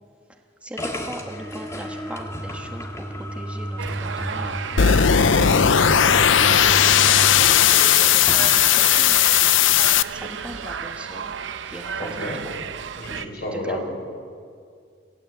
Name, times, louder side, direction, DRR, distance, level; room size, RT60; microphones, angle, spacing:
voice 1, 0.6-4.6 5.8-6.3 7.5-9.2 10.1-11.3 11.7-12.1 12.4-12.5 13.3-13.9, right 1 dB, 5° right, 2 dB, 1.5 m, -39 dB
sound 1, 0.8-9.5, equal, 15° left, 1.6 m, -33 dB
sound 2, 3.8-13.2, right 6 dB, 75° right, 0.8 m, -33 dB
sound 3, 4.8-10.0, left 9 dB, 80° left, 0.6 m, -16 dB
voice 2, 5.1-5.8 12.0-12.4 13.0-13.9, left 1 dB, 50° left, -1 dB, 6.5 m, -31 dB
27.5 x 17.0 x 7.9 m, 2.2 s
head